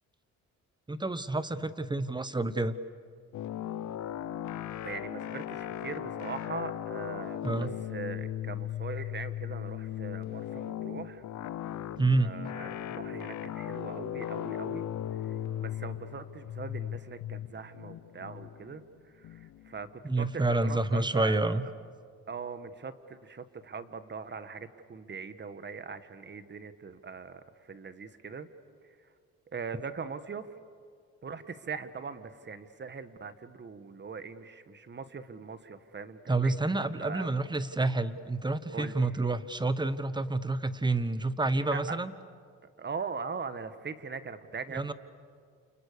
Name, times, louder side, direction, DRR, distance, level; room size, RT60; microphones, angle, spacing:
voice 1, 0.9-2.7 7.4-7.7 12.0-12.3 20.0-21.6 36.3-42.1 44.7-44.9, right 2 dB, 15° right, 13 dB, 1.2 m, -28 dB
sound 1, 3.3-19.9, left 11 dB, 70° left, 1.0 m, -37 dB
voice 2, 4.8-11.2 11.9-14.9 15.2-18.8 19.1-21.6 22.3-28.5 28.8-29.0 29.5-30.5 31.2-37.3 38.7-39.1 41.6-42.0 42.8-44.9, right 5 dB, 35° right, 11 dB, 1.5 m, -41 dB
29.5 x 29.0 x 6.8 m, 2.2 s
cardioid pair, 90°, 30 cm